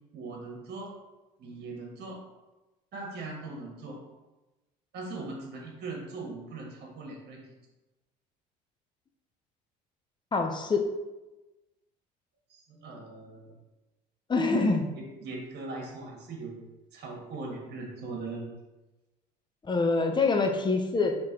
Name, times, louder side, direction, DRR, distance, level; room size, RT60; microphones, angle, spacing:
voice 1, 0.1-0.9 1.4-2.2 2.9-4.0 4.9-7.5 12.5-13.5 15.0-16.6 16.9-18.5, right 3 dB, 55° right, 0 dB, 1.5 m, -40 dB
voice 2, 10.3-10.9 14.3-14.8 19.6-21.2, left 3 dB, 20° left, 4 dB, 0.7 m, -25 dB
4.1 x 3.1 x 3.6 m, 1.1 s
hypercardioid pair, 75°, 21 cm